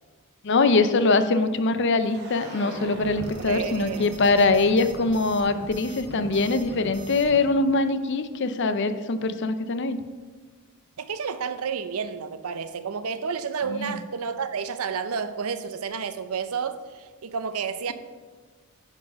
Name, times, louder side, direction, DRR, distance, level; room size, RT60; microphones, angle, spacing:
voice 1, 0.4-10.0 13.7-14.0, left 3 dB, 55° left, 0.5 m, -23 dB
sound 1, 2.0-7.5, right 1 dB, 50° right, 1.4 m, -40 dB
voice 2, 3.4-4.1 11.0-17.9, right 6 dB, 75° right, 0.6 m, -31 dB
10.5 x 4.8 x 5.2 m
head